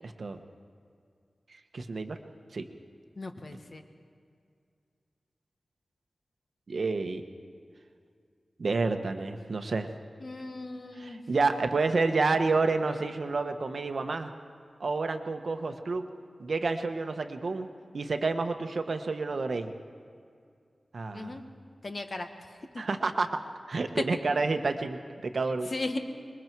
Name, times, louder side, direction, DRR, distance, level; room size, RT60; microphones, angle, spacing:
voice 1, 0.0-0.4 1.7-2.2 2.5-2.7 6.7-7.2 8.6-9.9 10.9-14.3 14.8-16.0 16.4-17.7 17.9-19.7 20.9-21.4 22.8-23.3 23.7-25.7, right 3 dB, 60° right, 7 dB, 1.1 m, -29 dB
voice 2, 3.2-3.8 10.2-11.3 21.1-21.4 21.8-22.3 22.7-22.8 25.7-26.0, left 2 dB, 45° left, 6 dB, 1.4 m, -37 dB
26.0 x 22.0 x 4.6 m, 2.3 s
wide cardioid pair, 105°, 0 cm